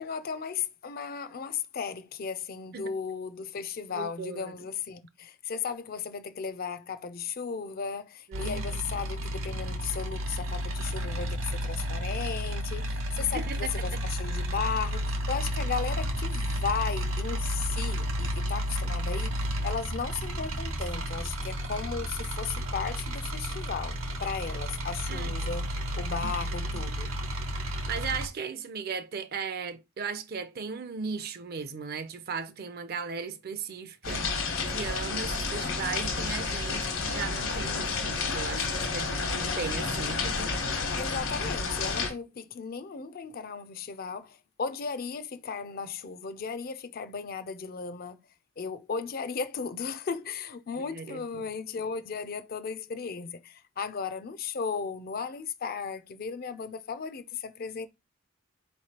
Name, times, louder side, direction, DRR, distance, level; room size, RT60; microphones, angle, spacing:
voice 1, 0.0-19.3 19.6-25.7 26.0-27.1 41.0-48.2 48.6-57.9, left 6 dB, 45° left, 0.4 m, -35 dB
voice 2, 3.9-4.5 8.3-8.8 13.2-14.0 25.1-25.3 26.2-26.3 26.6-26.8 27.6-40.6 50.8-51.2, right 5 dB, 50° right, 0.5 m, -37 dB
sound 1, 8.3-28.3, equal, 75° right, 0.8 m, -32 dB
sound 2, 34.0-42.1, left 4 dB, 80° left, 1.3 m, -30 dB
4.6 x 3.1 x 2.9 m
head